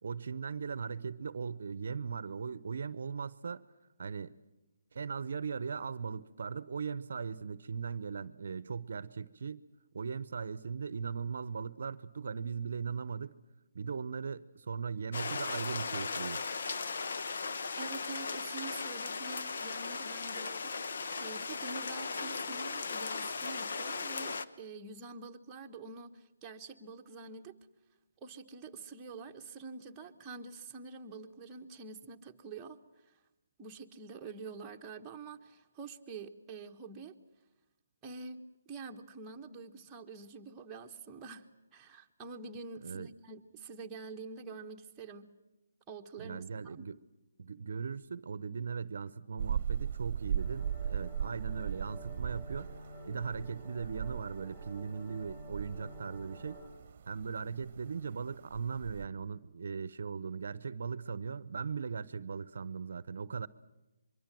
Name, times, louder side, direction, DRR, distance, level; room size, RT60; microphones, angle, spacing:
voice 1, 0.0-3.7 4.0-4.3 4.9-9.7 9.9-13.3 13.7-16.4 42.8-43.1 46.2-47.0 47.4-52.7 53.1-56.6 57.1-63.5, right 5 dB, 65° right, 16 dB, 0.8 m, -39 dB
sound 1, 15.1-24.5, left 4 dB, 60° left, 1.1 m, -37 dB
voice 2, 17.8-27.5 28.2-32.8 33.1-33.2 33.6-37.1 38.0-45.3 45.9-46.9, right 4 dB, 15° right, 1 dB, 1.3 m, -46 dB
sound 2, 49.4-59.1, right 8 dB, 40° right, 1.1 m, -39 dB
sound 3, 50.3-56.7, equal, 25° left, 7.7 m, -50 dB
24.5 x 23.5 x 7.6 m, 1.0 s
hypercardioid pair, 155°, 0 cm